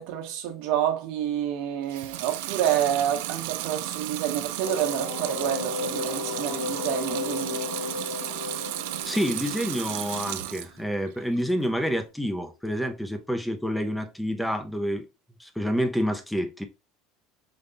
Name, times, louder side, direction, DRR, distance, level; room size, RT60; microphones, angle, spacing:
voice 1, 0.0-7.6, right 10 dB, 60° right, 1.2 m, -28 dB
Water tap faucet / Sink (filling or washing) / Liquid, 1.8-10.8 11.2-11.9, right 14 dB, 90° right, 0.4 m, -34 dB
sound 1, 4.6-10.3, left 5 dB, 75° left, 1.2 m, -34 dB
voice 2, 9.0-15.1 15.4-16.6, equal, ahead, 0.5 m, -28 dB
5.2 x 2.2 x 3.8 m
cardioid pair, 175°, 0 cm